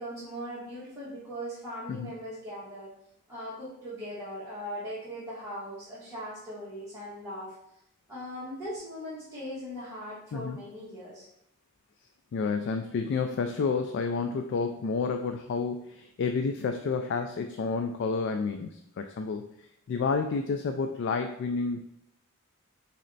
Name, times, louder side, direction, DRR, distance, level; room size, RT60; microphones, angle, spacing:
voice 1, 0.0-2.9 3.3-7.5 8.1-11.3, equal, 10° right, -12 dB, 1.5 m, -39 dB
voice 2, 12.3-19.5 19.9-21.8, left 4 dB, 55° left, 6 dB, 0.3 m, -30 dB
4.2 x 3.2 x 3.9 m, 0.76 s
head